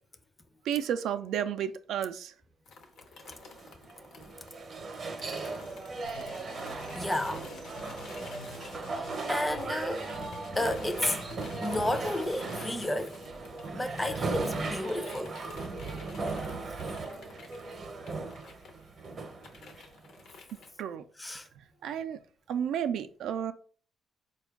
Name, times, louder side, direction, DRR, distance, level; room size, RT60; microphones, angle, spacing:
voice 1, 0.7-2.3 20.8-21.0 21.8-22.2 22.5-23.5, right 9 dB, 80° right, 0.3 m, -32 dB
sound 1, 2.7-9.6 9.9-20.7, left 4 dB, 70° left, 0.7 m, -52 dB
sound 2, 3.2-20.3, right 3 dB, 45° right, 0.7 m, -37 dB
sound 3, 6.0-12.9, left 3 dB, 85° left, 1.1 m, -48 dB
voice 2, 6.9-7.5 8.9-10.1 10.6-11.2 11.6-13.2 13.7-15.4 21.2-21.5, left 1 dB, 15° left, 0.4 m, -32 dB
4.3 x 2.3 x 3.5 m
cardioid pair, 90°, 0 cm